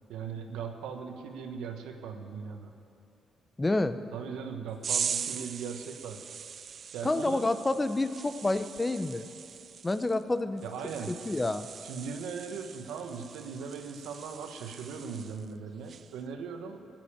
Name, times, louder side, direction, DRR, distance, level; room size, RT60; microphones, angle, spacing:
voice 1, 0.1-2.7 4.1-6.2 6.9-7.4 10.6-11.1 11.8-16.9, right 6 dB, 85° right, 5 dB, 1.3 m, -39 dB
voice 2, 3.6-4.0 7.0-9.3 9.8-10.6 11.1-11.7, left 2 dB, 20° left, 11 dB, 0.7 m, -28 dB
sound 1, 4.8-15.5 15.9-16.2, right 7 dB, 50° right, 0.4 m, -40 dB
15.5 x 9.3 x 8.9 m, 2.7 s
cardioid pair, 90°, 0 cm